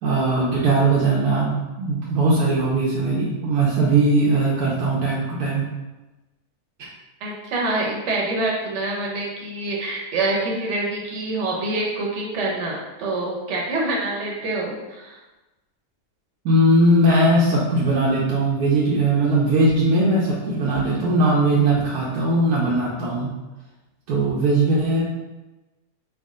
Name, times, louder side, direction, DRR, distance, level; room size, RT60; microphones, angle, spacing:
voice 1, 0.0-5.6 6.8-6.9 16.4-23.3 24.1-25.0, right 2 dB, 75° right, -6 dB, 1.1 m, -19 dB
voice 2, 7.2-15.2, right 2 dB, 55° right, -3 dB, 1.0 m, -26 dB
3.6 x 2.4 x 3.6 m, 1.1 s
omnidirectional pair, 1.6 m